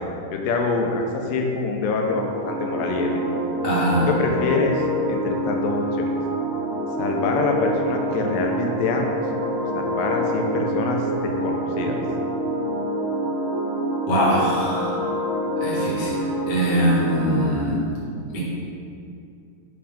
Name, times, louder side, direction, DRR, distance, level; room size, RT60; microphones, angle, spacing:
voice 1, 0.3-3.1 4.0-4.8 5.1-6.1 7.0-9.1 9.5-12.0, left 4 dB, 80° left, 2 dB, 2.4 m, -25 dB
sound 1, 2.1-17.4, right 1 dB, 50° right, 1.7 m, -26 dB
voice 2, 3.6-4.1 14.1-15.0 15.6-17.8 18.3-18.4, equal, 55° left, -6 dB, 0.5 m, -22 dB
5.6 x 5.5 x 5.1 m, 2.5 s
omnidirectional pair, 3.9 m